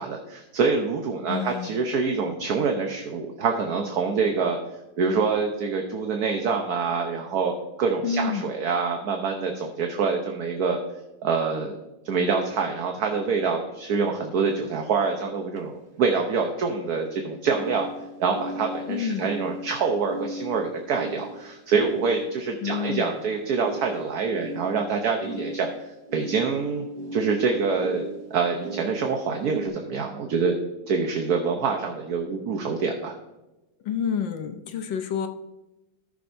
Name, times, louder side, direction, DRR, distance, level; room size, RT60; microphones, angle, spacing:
voice 1, 0.0-4.6 5.0-7.5 7.8-10.8 11.2-11.8 12.0-17.9 18.2-26.9 27.1-28.0 28.3-30.5 30.9-33.1, right 5 dB, 55° right, 3 dB, 1.3 m, -26 dB
voice 2, 1.3-1.8 8.0-8.5 18.9-19.3 22.6-23.2 33.8-35.3, left 7 dB, 70° left, 6 dB, 1.4 m, -29 dB
sound 1, 14.6-14.7 15.5-15.6 17.4-29.7, right 2 dB, 30° right, 1.3 m, -37 dB
17.5 x 6.6 x 2.7 m, 1.0 s
omnidirectional pair, 2.2 m